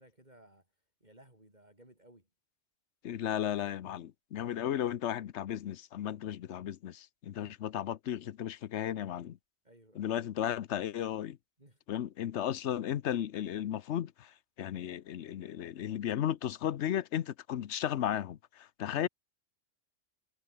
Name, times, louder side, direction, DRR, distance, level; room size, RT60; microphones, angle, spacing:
voice 1, 0.0-2.3 7.4-7.6 9.6-10.2 11.6-11.8 18.9-19.1, right 1 dB, 35° right, 7.2 m, -60 dB
voice 2, 3.0-9.4 10.0-11.4 11.9-19.1, left 10 dB, 75° left, 1.0 m, -35 dB
omnidirectional pair, 1.2 m